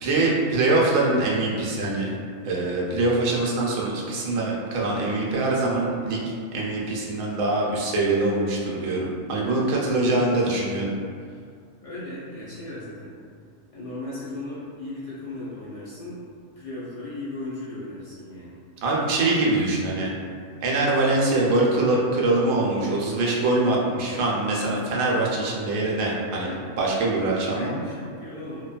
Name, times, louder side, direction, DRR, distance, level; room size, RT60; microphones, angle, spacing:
voice 1, 0.0-2.1 2.4-10.9 18.8-20.1 20.6-27.7, right 2 dB, 85° right, -3 dB, 1.0 m, -23 dB
voice 2, 11.8-13.2 13.7-16.3 16.6-18.6 27.5-28.6, left 1 dB, 55° left, -10 dB, 0.4 m, -36 dB
3.0 x 2.2 x 2.3 m, 2.2 s
omnidirectional pair, 1.4 m